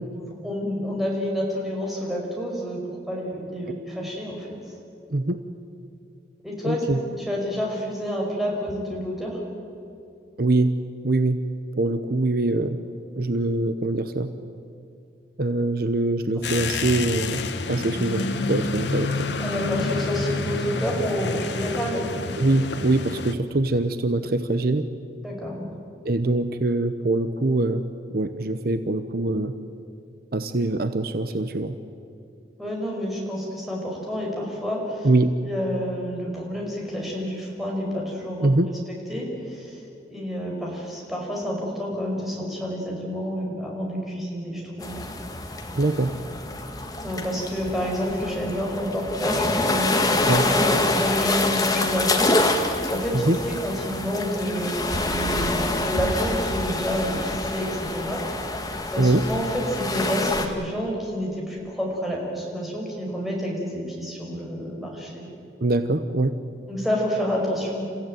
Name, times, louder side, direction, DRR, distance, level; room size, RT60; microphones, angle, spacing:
voice 1, 0.1-4.8 6.4-9.4 19.4-22.1 25.2-25.7 32.6-35.1 35.4-38.5 39.1-39.8 40.1-45.0 47.0-50.3 50.6-58.2 58.9-65.2 66.7-67.9, equal, ahead, -3 dB, 5.6 m, -29 dB
voice 2, 6.6-7.0 10.4-10.8 11.0-11.4 11.8-12.8 13.2-14.3 15.4-17.4 17.7-19.3 22.4-24.9 26.0-27.8 28.1-29.5 30.3-31.7 35.0-35.4 38.4-38.7 45.7-46.1 50.3-50.5 53.1-53.4 59.0-59.2 65.6-66.3, right 2 dB, 55° right, 10 dB, 0.9 m, -23 dB
sound 1, 16.4-23.3, left 3 dB, 80° left, 1.3 m, -28 dB
sound 2, 44.8-60.5, left 2 dB, 20° left, 1.8 m, -26 dB
29.5 x 15.0 x 9.2 m, 2.6 s
head